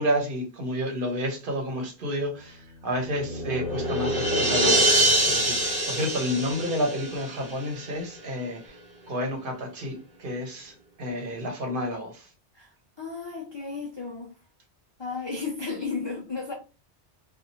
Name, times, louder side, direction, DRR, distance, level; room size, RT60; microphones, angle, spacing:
voice 1, 0.0-8.7 9.1-12.3, equal, 55° right, 1.0 m, -30 dB
sound 1, 2.2-6.3 8.7-8.8, left 1 dB, 75° left, 1.2 m, -39 dB
sound 2, 3.2-7.8, right 1 dB, 35° right, 0.7 m, -24 dB
voice 2, 12.5-14.4 15.0-16.5, left 4 dB, 45° left, 0.3 m, -34 dB
2.7 x 2.4 x 2.7 m
omnidirectional pair, 1.1 m